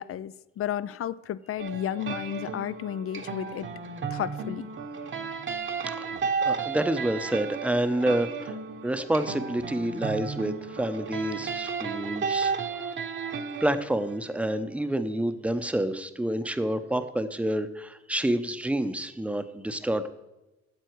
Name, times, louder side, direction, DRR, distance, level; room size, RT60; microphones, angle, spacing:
voice 1, 0.0-3.7 4.1-4.7, left 10 dB, 50° left, 17 dB, 0.4 m, -32 dB
sound 1, 1.6-14.8, right 5 dB, 40° right, 1.1 m, -33 dB
voice 2, 6.4-8.5 8.8-12.5 13.6-20.1, right 1 dB, 5° right, 10 dB, 0.7 m, -28 dB
13.0 x 7.7 x 4.6 m, 0.99 s
cardioid pair, 90°, 30 cm